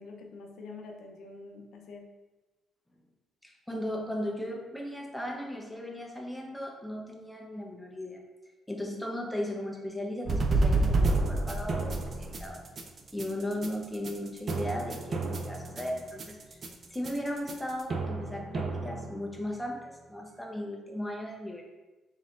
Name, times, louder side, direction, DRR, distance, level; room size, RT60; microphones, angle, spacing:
voice 1, 0.0-2.1, left 3 dB, 75° left, 3 dB, 0.6 m, -46 dB
voice 2, 3.4-8.2 8.7-12.6 13.1-16.6 16.9-21.6, left 1 dB, 5° left, -1 dB, 0.8 m, -36 dB
sound 1, 10.2-19.5, right 2 dB, 45° right, 0.5 m, -30 dB
4.1 x 3.6 x 2.5 m, 1.1 s
cardioid pair, 90°, 0 cm